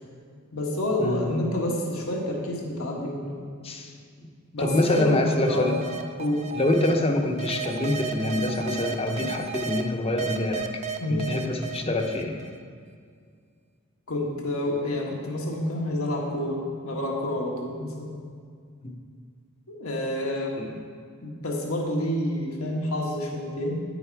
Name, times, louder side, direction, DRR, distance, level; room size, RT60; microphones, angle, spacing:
voice 1, 0.5-3.5 4.5-5.7 6.2-6.4 11.0-11.4 14.1-18.2 19.7-20.5 21.2-23.8, left 1 dB, 85° left, -1 dB, 1.5 m, -28 dB
voice 2, 4.6-5.8 6.5-10.8 11.1-12.4 18.8-18.9 20.6-20.8, left 1 dB, 30° left, 3 dB, 0.8 m, -25 dB
sound 1, 4.6-6.9 7.4-9.8 10.2-12.6, right 7 dB, 35° right, 0.5 m, -34 dB
10.0 x 6.8 x 4.7 m, 2.1 s
head